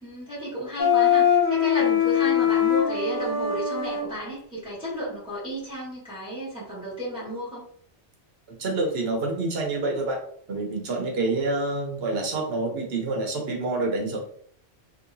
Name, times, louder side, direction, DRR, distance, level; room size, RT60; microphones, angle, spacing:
voice 1, 0.0-7.7, equal, 5° right, -8 dB, 1.3 m, -33 dB
Wind instrument woodwind instrument, 0.8-4.0, left 8 dB, 50° left, 1.1 m, -22 dB
voice 2, 8.6-10.2 10.5-14.2, right 2 dB, 65° right, 2 dB, 1.0 m, -27 dB
3.0 x 2.9 x 2.6 m, 0.62 s
omnidirectional pair, 1.1 m